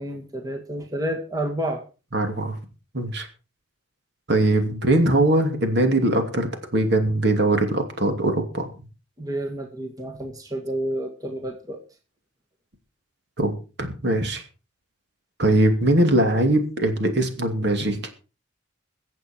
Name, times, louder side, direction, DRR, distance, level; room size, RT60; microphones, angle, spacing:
voice 1, 0.0-1.8 9.2-11.8, right 1 dB, 20° right, 2 dB, 2.0 m, -30 dB
voice 2, 2.1-2.6 2.9-3.3 4.3-8.7 13.4-14.4 15.4-18.1, right 1 dB, 55° right, 5 dB, 2.7 m, -21 dB
23.0 x 8.0 x 4.6 m, 0.34 s
head